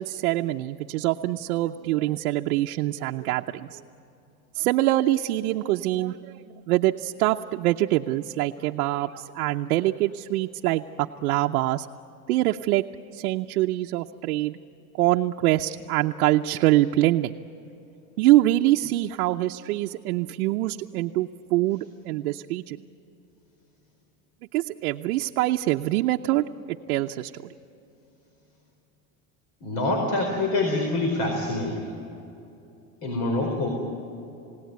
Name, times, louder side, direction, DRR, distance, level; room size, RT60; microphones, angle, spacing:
voice 1, 0.0-3.8 4.5-6.4 6.7-11.9 12.3-12.8 13.1-14.6 15.0-17.4 18.2-22.8 24.5-27.3, right 16 dB, 90° right, 3 dB, 0.8 m, -24 dB
voice 2, 29.6-31.9 33.0-33.7, left 2 dB, 60° left, 2 dB, 4.6 m, -25 dB
28.5 x 17.5 x 9.4 m, 2.8 s
supercardioid pair, 120°, 43 cm